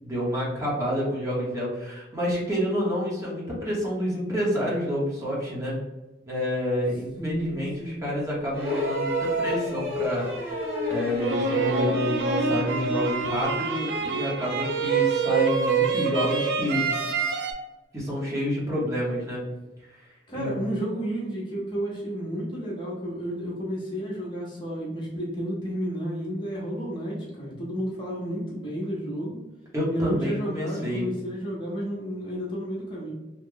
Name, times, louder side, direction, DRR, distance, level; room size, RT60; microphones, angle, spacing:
voice 1, 0.0-5.8 6.3-10.2 10.9-16.9 17.9-19.4 19.9-20.1 20.3-20.5 29.7-31.0, equal, 15° right, -6 dB, 1.1 m, -28 dB
voice 2, 7.2-8.1 20.3-29.4 29.9-33.1, equal, 30° left, -5 dB, 0.9 m, -31 dB
sound 1, 8.5-12.1 13.4-13.5, equal, 55° right, 1.2 m, -29 dB
sound 2, 11.2-17.5, right 5 dB, 70° right, 0.4 m, -26 dB
3.1 x 2.3 x 3.7 m, 1.1 s
head